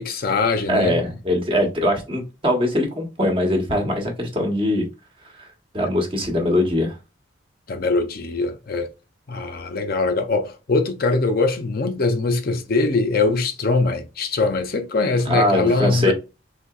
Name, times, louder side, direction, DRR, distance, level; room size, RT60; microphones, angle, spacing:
voice 1, 0.0-1.0 7.7-8.9 9.3-16.1, left 3 dB, 50° left, 0.5 m, -22 dB
voice 2, 0.7-4.8 5.7-7.0 15.3-16.1, left 1 dB, 30° right, 1.0 m, -21 dB
4.1 x 2.8 x 2.3 m
head